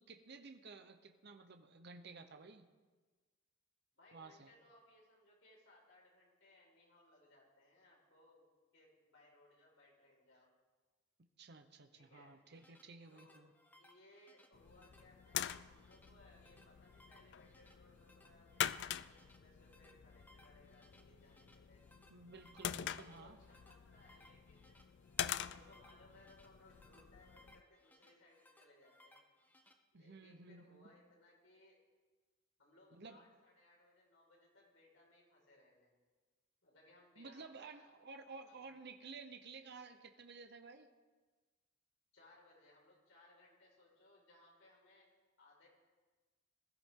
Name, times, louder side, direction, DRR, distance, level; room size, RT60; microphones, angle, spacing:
voice 1, 0.0-2.7 4.1-4.5 11.4-13.5 22.1-23.4 29.9-30.9 32.9-33.2 37.2-40.9, right 4 dB, 55° right, 7 dB, 0.9 m, -54 dB
voice 2, 3.9-8.4 8.7-10.5 11.9-12.4 13.1-13.4 13.8-21.8 23.0-24.8 25.4-29.1 29.9-31.8 32.6-35.9 36.6-37.9 38.5-38.6 42.1-45.1 45.4-45.7, left 2 dB, 85° left, -3 dB, 5.2 m, -66 dB
sound 1, 12.3-29.7, left 1 dB, 10° left, 0.9 m, -67 dB
sound 2, 14.5-27.6, left 10 dB, 60° left, 0.4 m, -45 dB
20.5 x 13.5 x 3.8 m, 1.3 s
head